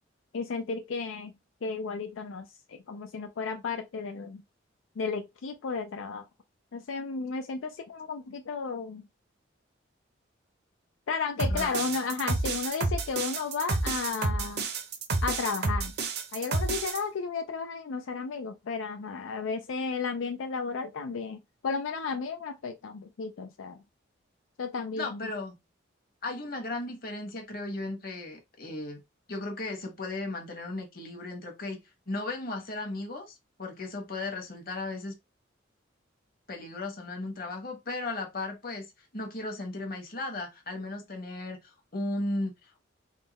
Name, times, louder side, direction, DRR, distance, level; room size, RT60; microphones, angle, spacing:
voice 1, 0.3-1.3 1.6-4.4 5.0-6.2 6.7-9.0 11.1-14.7 15.2-15.9 16.3-23.8 24.6-25.3, left 5 dB, 85° left, 0.4 m, -33 dB
sound 1, 11.4-17.0, right 3 dB, 55° right, 0.7 m, -30 dB
voice 2, 11.5-11.9 24.9-25.6 26.2-29.0 29.3-31.8 32.1-35.1 36.5-38.9 39.1-42.8, left 2 dB, 50° left, 1.2 m, -36 dB
3.6 x 2.2 x 4.0 m
head